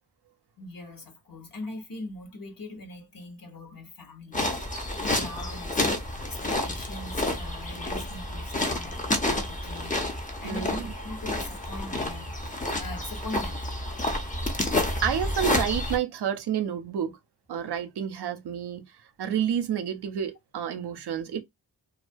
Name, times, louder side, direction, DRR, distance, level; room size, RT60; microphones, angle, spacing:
voice 1, 0.6-4.4 5.0-12.3 12.7-13.6, left 2 dB, 55° left, 0.9 m, -41 dB
sound 1, 4.3-16.0, left 1 dB, 20° left, 0.5 m, -29 dB
voice 2, 10.4-10.9 15.0-17.1 17.5-18.8 19.2-21.4, right 9 dB, 80° right, 0.5 m, -29 dB
2.4 x 2.1 x 2.5 m
wide cardioid pair, 90°, 39 cm